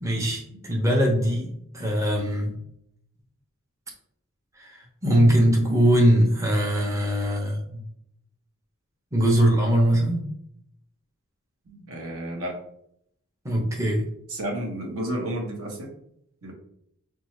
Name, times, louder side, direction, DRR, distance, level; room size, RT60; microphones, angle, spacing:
voice 1, 0.0-2.5 4.6-7.8 9.1-10.2 13.4-14.1, equal, 15° right, -2 dB, 0.7 m, -21 dB
voice 2, 11.7-12.6 14.3-15.9 16.4-16.5, right 1 dB, 65° right, 0 dB, 1.0 m, -32 dB
5.2 x 2.3 x 3.1 m, 0.72 s
head